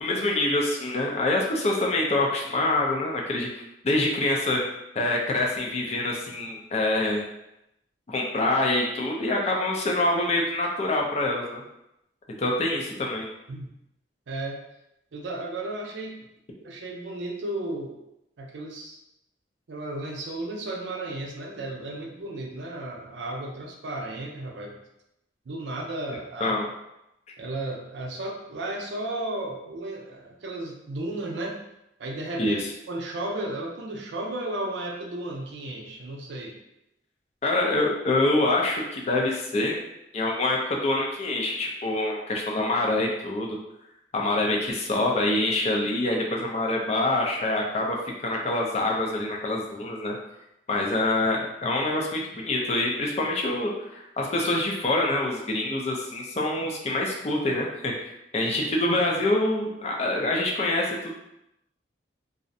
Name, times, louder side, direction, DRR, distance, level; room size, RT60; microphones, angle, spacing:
voice 1, 0.0-3.5 3.8-4.6 5.0-7.2 8.1-11.6 12.4-13.3 26.4-26.6 32.4-32.6 37.4-39.8 40.1-43.6 44.1-50.2 50.7-57.9 58.3-61.1, left 2 dB, 35° left, -1 dB, 0.4 m, -25 dB
voice 2, 14.3-14.6 15.1-16.2 16.6-18.0 18.4-19.0 19.7-24.8 25.5-26.6 27.4-31.6 32.0-32.6 32.9-36.6, right 2 dB, 80° right, 0 dB, 0.5 m, -34 dB
2.5 x 2.0 x 2.6 m, 0.85 s
head